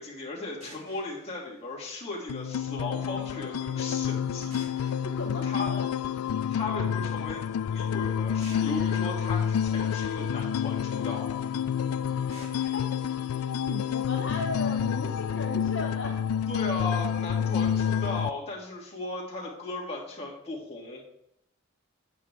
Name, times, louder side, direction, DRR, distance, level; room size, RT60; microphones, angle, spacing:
voice 1, 0.0-4.9 5.4-5.7 6.5-7.4 7.7-11.3 16.5-21.0, left 2 dB, 30° left, -4 dB, 2.7 m, -36 dB
sound 1, 0.6-2.6 4.5-6.5 8.4-10.6 12.3-14.3, equal, 30° right, 3.1 m, -54 dB
sound 2, 2.3-18.3, left 8 dB, 90° left, 0.4 m, -29 dB
voice 2, 5.0-5.9 12.6-12.8 13.7-16.3, left 2 dB, 55° left, 3 dB, 0.7 m, -36 dB
9.4 x 8.7 x 3.6 m, 0.78 s
head